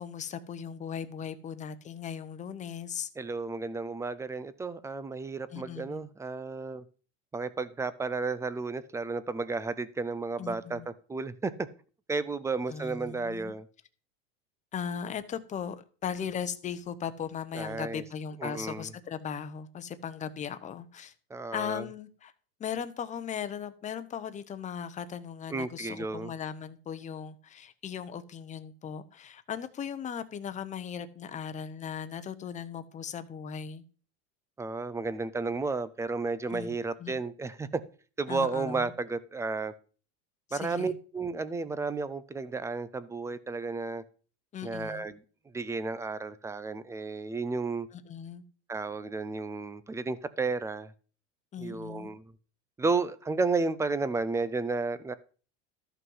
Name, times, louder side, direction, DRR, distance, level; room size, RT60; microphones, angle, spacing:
voice 1, 0.0-3.1 5.5-6.1 10.4-10.9 12.7-13.5 14.7-21.1 21.5-22.3 22.6-33.8 36.5-37.2 38.3-38.9 40.5-41.0 44.5-45.1 47.9-48.4 51.5-52.1, left 7 dB, 20° left, 0.8 m, -38 dB
voice 2, 3.2-6.8 7.3-11.7 12.1-13.7 17.5-18.0 18.4-18.9 21.3-21.9 25.5-26.3 34.6-37.8 38.2-39.7 40.5-44.0 44.6-45.2 45.5-47.9 48.7-50.9 51.6-52.2 52.8-55.1, right 3 dB, 10° right, 0.4 m, -32 dB
13.5 x 5.6 x 5.5 m
supercardioid pair, 140°, 35 cm